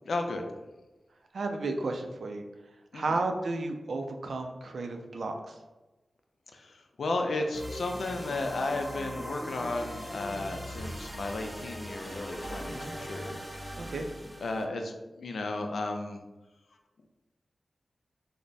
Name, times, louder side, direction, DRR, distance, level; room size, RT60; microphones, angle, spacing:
voice 1, 0.1-0.4 2.9-3.2 6.5-13.4 14.4-16.2, left 2 dB, 85° left, 4 dB, 0.4 m, -34 dB
voice 2, 1.3-2.4 2.9-5.6 12.7-12.9 13.8-14.1, right 3 dB, 80° right, 4 dB, 0.4 m, -33 dB
sound 1, 7.5-14.6, equal, ahead, 0.5 m, -40 dB
3.3 x 2.1 x 4.0 m, 1.1 s
wide cardioid pair, 85°, 0 cm